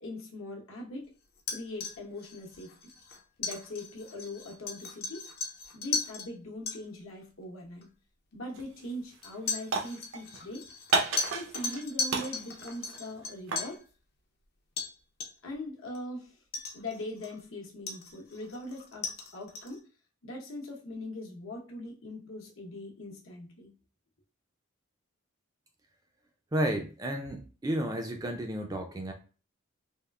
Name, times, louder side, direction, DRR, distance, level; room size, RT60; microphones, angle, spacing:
voice 1, 0.0-1.1 1.5-2.9 3.4-5.3 5.7-7.9 8.3-10.7 11.3-13.8 15.4-16.4 16.7-19.8 20.2-23.7, left 1 dB, 75° left, 0 dB, 0.9 m, -41 dB
sound 1, 1.4-6.3 6.7-6.8 7.8-7.9 9.2-13.8 14.8-14.9 15.2-15.5 15.9-16.0 16.5-17.4 17.9-19.8, left 5 dB, 50° left, 0.5 m, -37 dB
sound 2, 8.5-8.8 9.1-10.4 10.9-11.8 12.1-13.7, right 4 dB, 80° right, 0.7 m, -32 dB
voice 2, 26.5-29.1, right 1 dB, 20° right, 4 dB, 0.3 m, -32 dB
3.5 x 2.3 x 2.2 m, 0.36 s
head